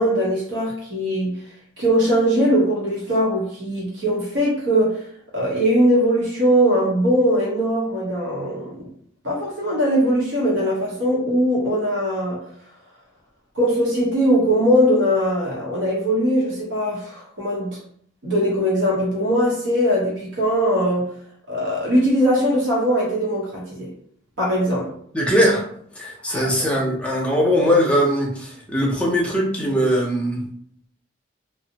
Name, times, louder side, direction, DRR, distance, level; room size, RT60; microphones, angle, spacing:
voice 1, 0.0-1.3 1.8-5.0 5.3-8.9 9.2-12.4 13.5-17.7 18.2-21.1 21.5-23.9 24.4-24.9 26.3-26.5, equal, 65° right, -4 dB, 0.8 m, -20 dB
voice 2, 25.1-25.6 25.9-30.4, equal, 5° left, -3 dB, 0.5 m, -20 dB
2.5 x 2.0 x 2.7 m, 0.63 s
head